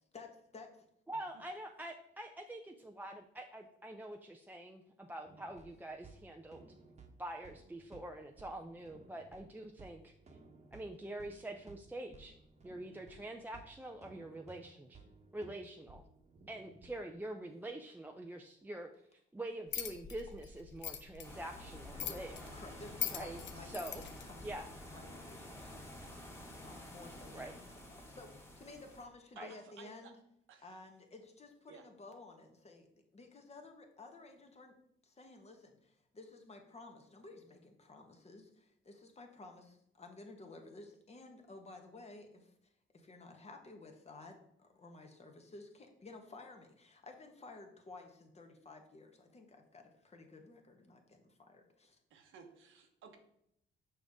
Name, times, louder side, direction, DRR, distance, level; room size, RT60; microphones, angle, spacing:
voice 1, 0.1-0.8 21.9-22.2 22.5-26.2 26.6-30.2 30.6-34.8 35.0-52.0, left 3 dB, 35° left, 4 dB, 1.3 m, -54 dB
voice 2, 1.1-6.7 7.2-10.1 10.7-12.4 12.6-15.0 15.3-16.0 16.5-18.9 19.3-22.4 23.1-24.0 24.4-24.6 27.3-27.5 29.4-29.5, right 1 dB, 10° right, 3 dB, 0.5 m, -45 dB
sound 1, 5.2-17.1, right 3 dB, 35° right, 1.1 m, -59 dB
sound 2, 19.7-24.2, left 9 dB, 65° left, 0.8 m, -43 dB
sound 3, 21.2-29.0, left 1 dB, 15° left, 1.8 m, -50 dB
voice 3, 29.4-30.1 30.5-30.8 31.7-31.8 52.1-53.2, right 6 dB, 80° right, 5 dB, 1.1 m, -56 dB
6.1 x 5.2 x 3.6 m, 0.75 s
cardioid pair, 90°, 20 cm